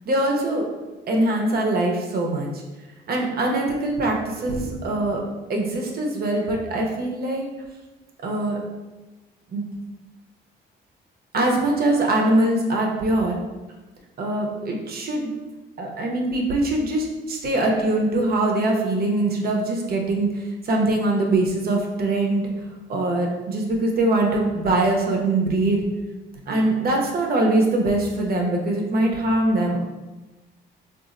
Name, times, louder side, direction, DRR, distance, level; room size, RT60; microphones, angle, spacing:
voice 1, 0.0-0.7 1.1-2.6 3.1-5.2 5.5-7.4 8.2-8.6 9.5-9.7 11.3-13.4 14.2-15.3 15.8-22.5 22.9-25.8 26.5-29.8, right 2 dB, 50° right, 0 dB, 0.7 m, -22 dB
3.9 x 2.4 x 2.5 m, 1.2 s
cardioid pair, 90°, 20 cm